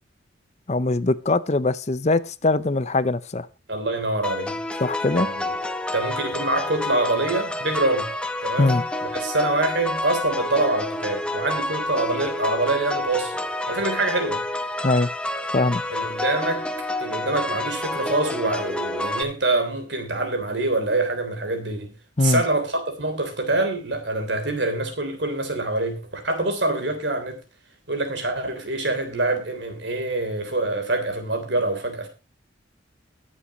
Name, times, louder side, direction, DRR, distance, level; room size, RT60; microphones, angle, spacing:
voice 1, 0.7-3.5 4.8-5.3 8.6-8.8 14.8-15.1 15.5-15.8 22.2-22.4, left 2 dB, 35° left, 0.6 m, -21 dB
voice 2, 3.7-4.8 5.1-5.5 5.9-8.1 8.4-8.8 9.1-14.4 15.9-16.7 17.0-21.9 22.2-27.4 27.9-32.1, right 2 dB, 60° right, 3.4 m, -25 dB
sound 1, 4.2-19.2, left 1 dB, 5° left, 0.9 m, -29 dB
22.0 x 7.6 x 3.0 m
head